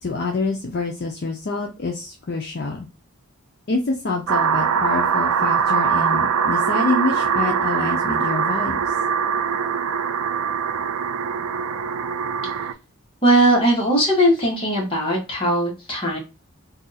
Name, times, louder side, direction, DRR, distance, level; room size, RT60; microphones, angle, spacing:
voice 1, 0.0-2.9 3.7-8.8, left 3 dB, 50° left, 0 dB, 0.5 m, -26 dB
sound 1, 4.3-12.7, right 7 dB, 85° right, 0.3 m, -22 dB
voice 2, 13.2-16.2, right 1 dB, 25° left, -2 dB, 1.1 m, -19 dB
2.6 x 2.3 x 3.9 m, 0.27 s
head